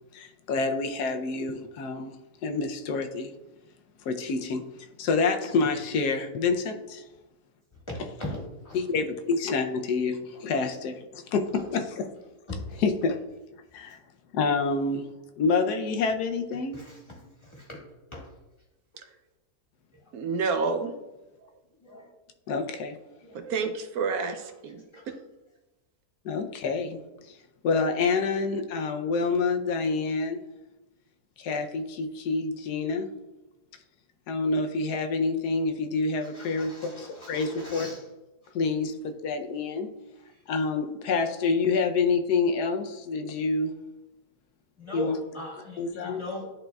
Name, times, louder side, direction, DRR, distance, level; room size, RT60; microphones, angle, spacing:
voice 1, 0.1-2.1 2.4-3.3 4.0-7.0 8.0-8.1 8.7-12.1 12.8-13.2 13.7-14.0 14.3-15.1 15.4-16.8 22.5-23.0 26.2-27.0 27.3-27.4 27.6-30.4 31.4-33.1 34.3-37.9 38.5-39.9 40.5-43.7 44.9-45.2 45.8-46.2, left 4 dB, 80° left, 5 dB, 1.2 m, -27 dB
voice 2, 7.9-8.4 8.6-8.8 12.5-12.7 16.7-17.2 17.4-17.8 18.1-18.3 21.8-22.1 24.9-25.0 36.3-38.0 44.8-46.4, left 1 dB, 20° left, -3 dB, 1.4 m, -39 dB
voice 3, 20.1-20.9 23.3-24.8, right 4 dB, 70° right, 6 dB, 1.1 m, -29 dB
11.0 x 4.0 x 2.3 m, 1.1 s
omnidirectional pair, 1.7 m